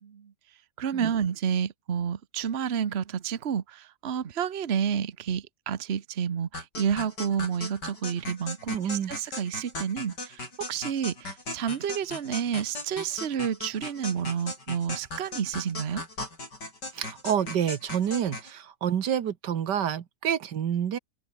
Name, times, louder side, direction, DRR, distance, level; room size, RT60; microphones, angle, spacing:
voice 1, 0.0-0.3 0.8-10.4 10.7-16.0, right 8 dB, 45° right, 1.2 m, -30 dB
sound 1, 6.5-18.5, left 2 dB, 85° left, 8.6 m, -38 dB
voice 2, 8.7-9.1 16.9-21.0, right 9 dB, 90° right, 1.9 m, -28 dB
omnidirectional pair, 1.8 m